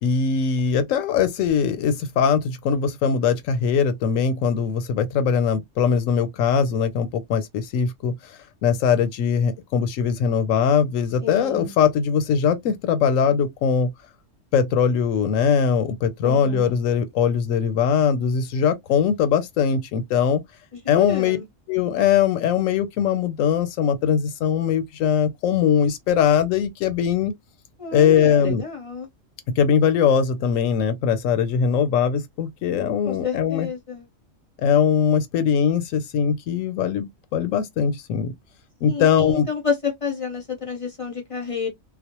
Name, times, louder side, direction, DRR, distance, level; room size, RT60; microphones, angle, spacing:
voice 1, 0.0-8.1 8.6-13.9 14.5-20.4 20.9-21.4 21.7-27.3 27.9-28.6 29.5-33.7 34.6-38.3 38.8-39.5, left 7 dB, 90° left, 1.0 m, -21 dB
voice 2, 11.2-11.7 16.2-16.7 20.7-21.5 27.8-29.1 33.0-34.1 38.9-41.7, left 6 dB, 45° left, 0.4 m, -29 dB
2.3 x 2.0 x 2.9 m
omnidirectional pair, 1.3 m